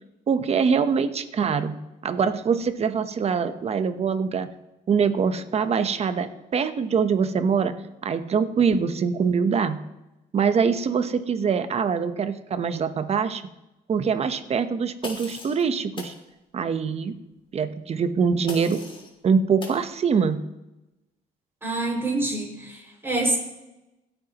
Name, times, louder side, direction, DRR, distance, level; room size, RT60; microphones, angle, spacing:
voice 1, 0.3-1.8 2.0-4.5 4.9-7.7 8.0-9.8 10.3-13.4 13.9-16.1 16.5-17.1 17.5-18.8 19.2-20.4, right 6 dB, 40° right, 10 dB, 1.0 m, -23 dB
sound 1, 15.0-15.6 16.0-16.2 18.5-19.1 19.6-19.8, left 3 dB, 30° left, 2.9 m, -38 dB
voice 2, 21.6-23.4, right 2 dB, 15° right, -2 dB, 6.0 m, -26 dB
26.0 x 9.0 x 3.0 m, 0.97 s
cardioid pair, 110°, 17 cm